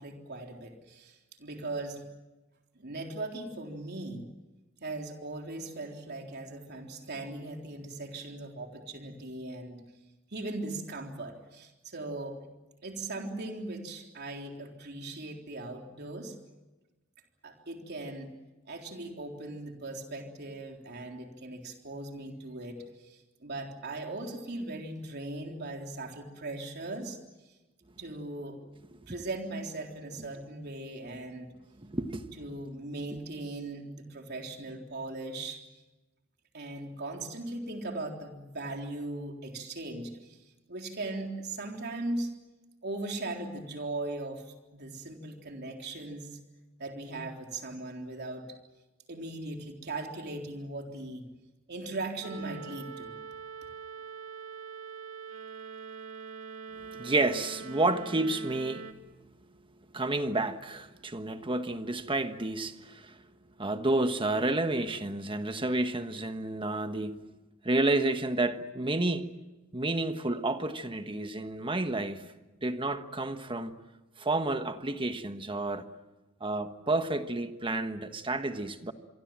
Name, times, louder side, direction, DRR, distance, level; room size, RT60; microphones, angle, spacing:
voice 1, 0.0-2.0 2.8-4.2 4.8-9.8 10.3-12.5 12.8-16.3 17.4-18.3 18.7-27.2 28.0-28.6 29.1-31.5 32.4-35.6 36.5-40.4 40.7-42.3 42.8-44.4 44.7-46.4 46.8-48.6 49.1-51.3 51.7-53.1, right 2 dB, 55° right, 3.8 m, -39 dB
voice 2, 31.8-32.2 56.9-58.9 59.9-63.2 63.6-67.2 67.6-69.3 69.7-72.3 72.6-73.7 74.2-75.9 76.4-78.9, right 2 dB, 25° right, 1.4 m, -30 dB
sound 1, 52.2-58.9, right 6 dB, 80° right, 2.4 m, -43 dB
26.5 x 23.5 x 7.5 m
head